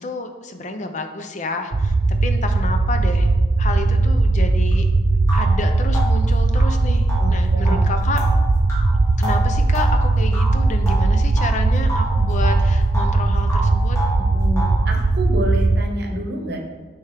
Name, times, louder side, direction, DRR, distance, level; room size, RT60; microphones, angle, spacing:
voice 1, 0.0-3.3 3.6-4.9 5.3-8.2 9.2-14.0, left 2 dB, 35° left, 6 dB, 0.4 m, -30 dB
sound 1, 1.7-15.8, right 3 dB, 40° right, 0.3 m, -18 dB
sound 2, 4.7-4.8 5.3-11.6 11.9-13.2 13.5-14.9, equal, 15° left, 1.2 m, -30 dB
sound 3, 6.9-9.0, equal, 10° right, 1.0 m, -30 dB
voice 2, 7.2-7.8 14.2-16.6, equal, 55° right, 2 dB, 0.9 m, -28 dB
9.3 x 3.5 x 3.4 m, 1.5 s
head